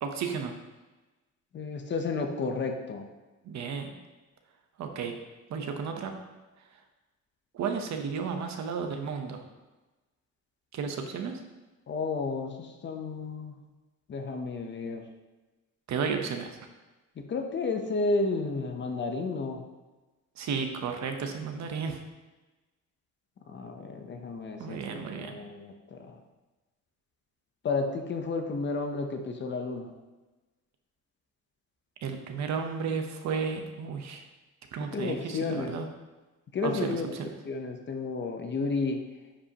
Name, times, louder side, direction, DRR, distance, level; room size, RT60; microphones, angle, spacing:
voice 1, 0.0-0.5 3.4-3.9 4.8-5.1 5.5-6.2 7.5-9.4 10.7-11.4 15.9-16.6 20.4-22.0 24.6-25.4 32.0-34.2 34.7-35.9 36.6-37.3, right 5 dB, 65° right, 5 dB, 0.9 m, -33 dB
voice 2, 1.5-3.1 11.9-13.6 14.1-15.0 17.3-19.6 23.5-26.2 27.6-29.9 34.8-35.7 36.5-37.2 37.5-39.0, left 3 dB, 40° left, 4 dB, 0.8 m, -32 dB
9.9 x 5.2 x 2.9 m, 1.2 s
cardioid pair, 155°, 30 cm